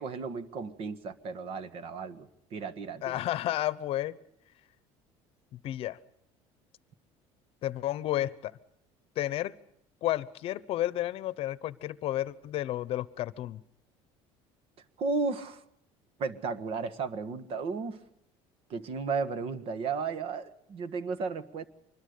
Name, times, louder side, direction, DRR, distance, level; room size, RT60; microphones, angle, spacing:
voice 1, 0.0-3.2 15.0-15.6 16.2-18.0 18.7-21.6, right 4 dB, 50° right, 11 dB, 1.6 m, -34 dB
voice 2, 3.0-4.2 5.5-6.0 7.6-8.5 9.2-9.5 10.0-13.6, left 14 dB, 55° left, 18 dB, 0.9 m, -32 dB
25.0 x 21.0 x 6.7 m, 0.74 s
cardioid pair, 140°, 12 cm